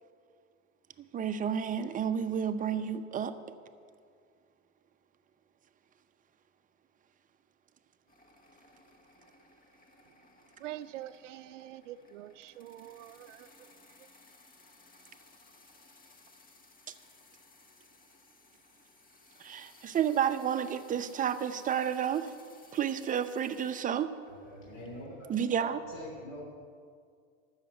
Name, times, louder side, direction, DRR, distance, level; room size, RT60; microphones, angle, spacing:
voice 1, 1.0-3.4 16.9-17.0 19.4-22.3 22.7-24.1 25.3-25.8, right 8 dB, 20° right, 0.7 m, -31 dB
sound 1, 8.1-25.0, left 3 dB, 25° left, 1.3 m, -60 dB
voice 2, 10.6-13.5, right 13 dB, 80° right, 0.5 m, -45 dB
voice 3, 24.3-25.3 25.9-26.4, left 1 dB, 45° left, 3.1 m, -44 dB
12.5 x 6.6 x 8.1 m
hypercardioid pair, 100°, 36 cm